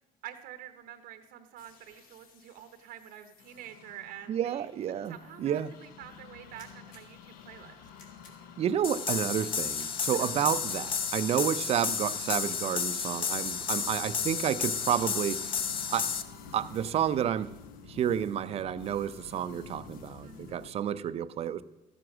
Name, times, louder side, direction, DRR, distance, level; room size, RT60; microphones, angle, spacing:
voice 1, 0.2-4.7 5.1-7.9 20.2-20.7, right 11 dB, 85° right, 1.0 m, -47 dB
sound 1, 1.6-20.7, left 6 dB, 80° left, 1.0 m, -50 dB
voice 2, 4.3-5.7 8.6-15.5 15.9-16.1 16.5-17.5 17.9-21.6, right 9 dB, 45° right, 0.5 m, -30 dB
sound 2, 6.5-7.0 7.9-8.4 9.3-9.9 10.6-11.0, left 4 dB, 65° left, 2.9 m, -56 dB
sound 3, 8.8-16.2, left 6 dB, 35° left, 0.7 m, -32 dB
13.5 x 7.7 x 6.1 m
cardioid pair, 145°, 15 cm